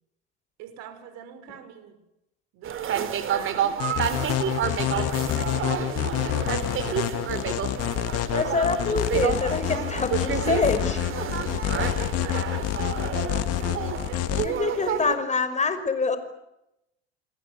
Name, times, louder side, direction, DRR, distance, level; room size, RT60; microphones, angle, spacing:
voice 1, 0.6-2.0 2.5-8.2 11.1-13.1 14.0-15.2, right 9 dB, 55° right, 11 dB, 5.7 m, -44 dB
sound 1, 2.6-15.2, right 9 dB, 40° right, 3.7 m, -29 dB
sound 2, 3.8-14.5, left 13 dB, 50° left, 1.9 m, -28 dB
voice 2, 8.3-11.0 14.4-16.2, left 4 dB, 20° left, 10 dB, 5.8 m, -26 dB
30.0 x 21.5 x 8.4 m, 0.87 s
hypercardioid pair, 80°, 31 cm